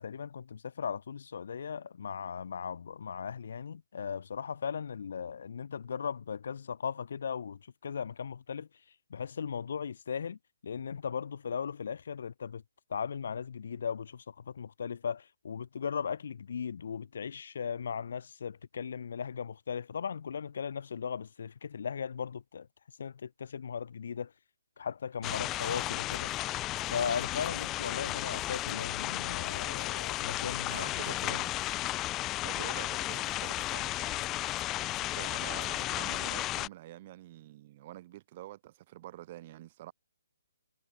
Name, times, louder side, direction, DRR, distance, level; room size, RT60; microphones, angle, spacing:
voice 1, 0.0-8.7 9.1-12.6 12.9-22.7 23.0-24.3 24.8-26.4 26.9-31.0 31.3-31.4, left 7 dB, 60° left, 0.7 m, -37 dB
sound 1, 25.2-36.7, left 16 dB, 15° left, 0.3 m, -34 dB
voice 2, 30.7-31.5 32.4-34.5 35.0-39.9, right 15 dB, 35° right, 5.2 m, -47 dB
hypercardioid pair, 160°, 0 cm